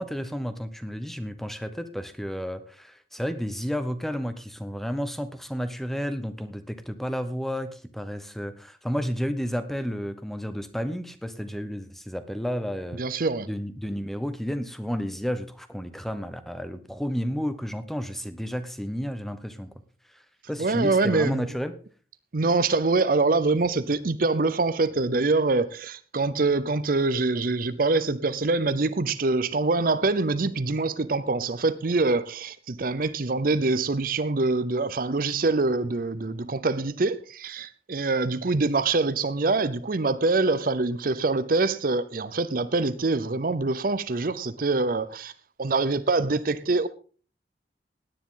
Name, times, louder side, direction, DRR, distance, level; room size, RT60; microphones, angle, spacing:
voice 1, 0.0-13.0 13.5-19.7 20.5-21.7, equal, ahead, 0.9 m, -31 dB
voice 2, 13.0-13.5 20.6-21.5 22.3-45.3 45.6-46.9, right 3 dB, 50° right, 0.6 m, -25 dB
17.0 x 10.0 x 3.8 m
head